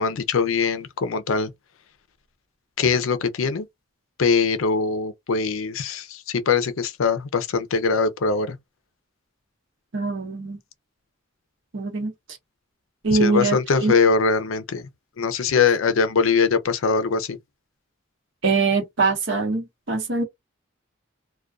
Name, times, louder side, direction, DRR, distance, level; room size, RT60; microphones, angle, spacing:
voice 1, 0.0-1.5 2.8-3.7 4.2-8.6 13.1-14.9 15.2-17.4, left 5 dB, 75° left, 0.5 m, -22 dB
voice 2, 9.9-10.6 11.7-12.1 13.0-13.9 18.4-20.2, right 4 dB, 65° right, 0.9 m, -23 dB
2.4 x 2.2 x 2.3 m
head